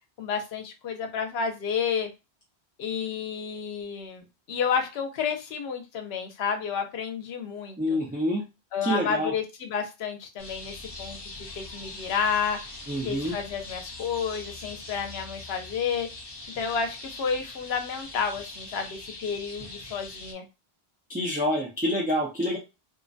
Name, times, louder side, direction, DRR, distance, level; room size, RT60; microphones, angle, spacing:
voice 1, 0.2-2.1 2.8-8.0 8.7-12.6 13.0-16.1 16.6-20.5, left 6 dB, 75° left, 5 dB, 0.8 m, -31 dB
voice 2, 7.8-8.4 8.8-9.3 12.9-13.3 21.1-22.6, equal, 15° right, -5 dB, 0.4 m, -27 dB
sound 1, 10.4-20.3, left 2 dB, 25° left, 0.7 m, -42 dB
2.4 x 2.1 x 2.5 m, 0.27 s
omnidirectional pair, 1.1 m